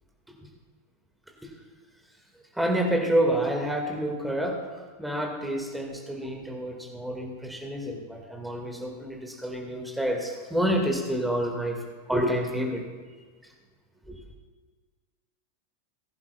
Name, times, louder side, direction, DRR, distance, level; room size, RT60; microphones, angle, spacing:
voice 1, 2.5-11.8 12.1-12.8 14.1-14.2, right 1 dB, 5° right, 1 dB, 1.9 m, -28 dB
19.5 x 10.5 x 2.3 m, 1.5 s
figure-of-eight pair, 90°, 0 cm